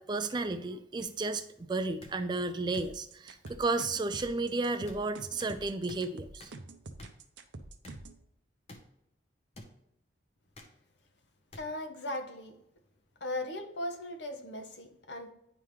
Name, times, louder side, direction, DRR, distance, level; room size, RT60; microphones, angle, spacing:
voice 1, 0.0-6.5, right 3 dB, 25° right, 10 dB, 0.3 m, -33 dB
sound 1, 1.0-1.1 2.0-2.1 2.7-2.8 3.5-3.6 4.2-4.3 4.9-5.0 5.4-5.5 5.9-6.0 6.4-6.5 7.0-7.1 7.8-8.0 8.7-8.8 9.5-9.7 10.5-10.7 11.5-11.6 12.5-12.6, left 1 dB, 30° left, 1.0 m, -49 dB
sound 2, 2.8-8.2, right 2 dB, 70° right, 0.7 m, -46 dB
voice 2, 11.6-12.6 13.2-15.3, left 1 dB, 65° left, 6 dB, 0.9 m, -38 dB
10.0 x 3.7 x 3.1 m, 0.78 s
head